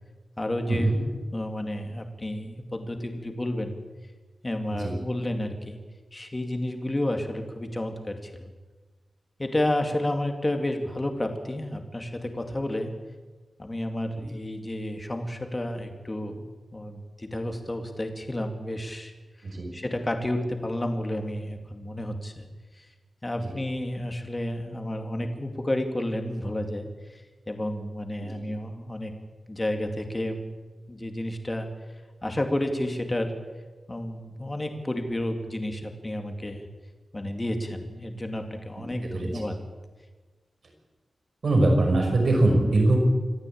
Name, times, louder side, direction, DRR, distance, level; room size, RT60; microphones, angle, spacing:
voice 1, 0.4-0.9 1.3-3.8 4.4-5.8 6.1-8.5 9.4-12.9 13.6-16.4 16.7-19.1 19.7-22.5 22.8-22.9 23.2-27.2 27.5-29.1 29.5-30.5 30.9-31.7 32.2-33.4 33.9-36.7 37.1-39.6, left 1 dB, 20° left, 5 dB, 2.4 m, -31 dB
voice 2, 41.4-43.0, right 2 dB, 55° right, 2 dB, 6.0 m, -22 dB
26.0 x 14.5 x 8.7 m, 1.3 s
wide cardioid pair, 170°, 0 cm